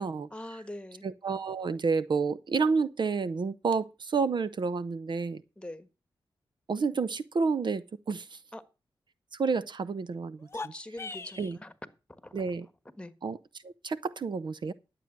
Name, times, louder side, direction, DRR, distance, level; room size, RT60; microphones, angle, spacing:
voice 1, 0.3-1.0 5.6-5.9 8.5-8.6 10.5-11.7 12.2-12.5 13.0-13.1, left 1 dB, 10° left, 1.5 m, -43 dB
voice 2, 1.0-5.4 6.7-8.4 9.4-10.4 11.4-11.6 12.3-12.7 13.2-13.4 13.6-14.7, right 5 dB, 60° right, 0.7 m, -30 dB
sound 1, 10.4-11.6, left 3 dB, 30° left, 0.6 m, -40 dB
11.5 x 7.8 x 6.0 m
cardioid pair, 75°, 9 cm